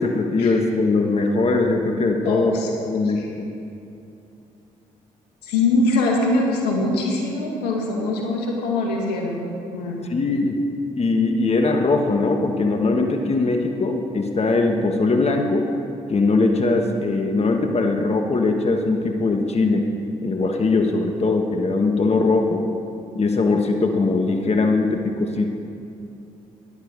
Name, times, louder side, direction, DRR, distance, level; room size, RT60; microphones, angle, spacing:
voice 1, 0.0-2.5 2.9-3.5 10.1-10.6 11.0-15.7 16.1-19.9 20.2-22.6 23.1-25.5, left 3 dB, 40° left, 3 dB, 1.3 m, -21 dB
voice 2, 2.2-2.7 3.0-3.3 5.4-9.5 9.7-10.0, left 2 dB, 80° left, 0 dB, 1.9 m, -23 dB
13.5 x 10.5 x 5.2 m, 2.7 s
hypercardioid pair, 50°, 17 cm